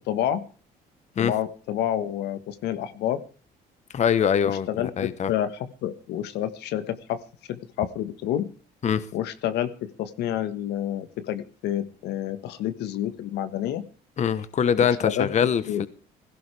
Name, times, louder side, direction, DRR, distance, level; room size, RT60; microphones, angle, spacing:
voice 1, 0.1-0.4 1.2-3.2 4.4-7.2 7.5-8.5 9.1-13.9 14.8-15.8, left 11 dB, 80° left, 1.5 m, -29 dB
voice 2, 3.9-4.7 5.0-5.3 8.8-9.0 14.2-15.9, left 8 dB, 45° left, 1.2 m, -23 dB
20.5 x 16.5 x 3.4 m
cardioid pair, 110°, 17 cm